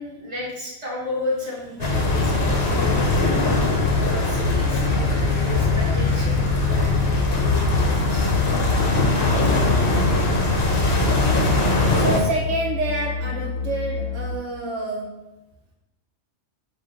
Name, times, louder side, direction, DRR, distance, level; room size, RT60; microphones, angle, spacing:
voice 1, 0.0-8.3 10.5-10.7, left 1 dB, 35° right, -6 dB, 1.5 m, -34 dB
sound 1, 1.8-12.2, left 2 dB, 60° left, 1.0 m, -20 dB
voice 2, 2.6-3.0 9.3-9.9 11.9-15.3, right 2 dB, 80° right, -1 dB, 1.0 m, -29 dB
sound 2, 7.3-14.4, left 6 dB, 85° left, 0.9 m, -29 dB
3.9 x 2.9 x 4.6 m, 0.98 s
omnidirectional pair, 1.2 m